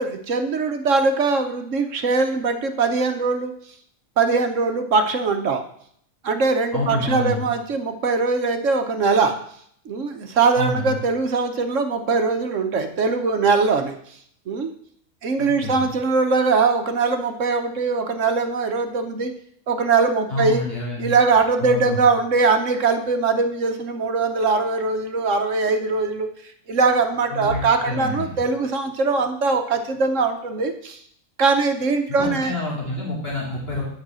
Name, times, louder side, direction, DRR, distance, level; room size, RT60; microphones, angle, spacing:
voice 1, 0.0-3.5 4.2-5.6 6.2-9.4 9.9-13.9 14.5-14.7 15.2-19.3 19.7-20.6 21.0-26.3 26.7-31.0 31.4-32.5, right 4 dB, 65° right, 7 dB, 1.2 m, -21 dB
voice 2, 6.7-7.5 10.5-11.0 15.4-15.9 20.3-21.1 21.6-22.0 27.3-28.3 32.1-33.8, left 2 dB, 40° left, -4 dB, 2.7 m, -28 dB
7.9 x 5.6 x 7.5 m, 0.65 s
omnidirectional pair, 1.5 m